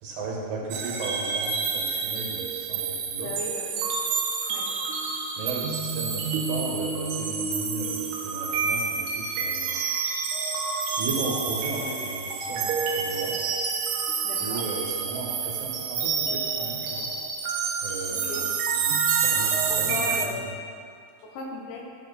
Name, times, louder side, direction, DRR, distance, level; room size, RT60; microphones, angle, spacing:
voice 1, 0.0-3.3 5.4-9.8 10.9-13.4 14.3-17.1 17.8-18.5 18.8-20.5, right 3 dB, 55° right, -4 dB, 2.6 m, -35 dB
sound 1, 0.7-20.3, right 5 dB, 90° right, 2.8 m, -28 dB
voice 2, 3.2-3.8 4.5-4.7 14.2-14.6 18.1-18.5 19.7-20.5 21.2-21.9, left 3 dB, 75° left, -1 dB, 2.8 m, -36 dB
13.0 x 4.8 x 4.1 m, 2.3 s
omnidirectional pair, 4.6 m